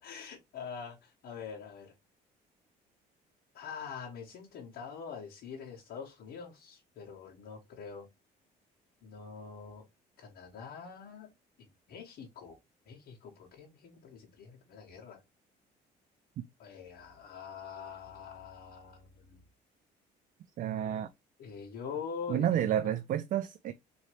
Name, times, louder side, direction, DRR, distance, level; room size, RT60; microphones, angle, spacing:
voice 1, 0.0-1.9 3.5-8.1 9.0-9.8 10.2-11.3 11.9-12.6 12.8-15.2 16.6-19.4 21.4-23.0, left 6 dB, 65° left, 1.4 m, -44 dB
voice 2, 20.6-21.1 22.3-23.7, right 10 dB, 50° right, 0.4 m, -30 dB
4.3 x 3.1 x 3.1 m
cardioid pair, 110°, 17 cm